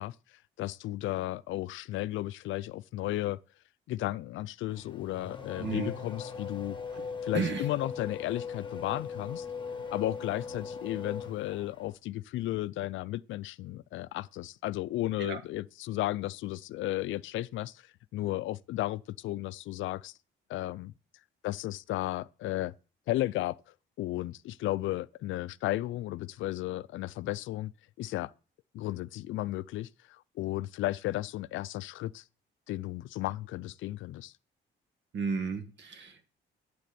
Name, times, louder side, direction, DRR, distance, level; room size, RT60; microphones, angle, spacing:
voice 1, 0.0-3.4 3.9-6.8 7.2-9.5 9.9-20.2 20.5-20.9 21.4-22.7 23.1-23.6 24.0-27.7 28.0-28.3 28.7-32.2 32.7-34.3, left 15 dB, 75° left, 0.4 m, -34 dB
Race car auto racing / Accelerating revving vroom, 4.7-12.0, left 5 dB, 25° left, 1.3 m, -40 dB
voice 2, 5.6-5.9 7.3-7.6 15.2-15.4 35.1-36.3, right 5 dB, 65° right, 1.6 m, -33 dB
9.2 x 4.3 x 6.9 m
cardioid pair, 90°, 20 cm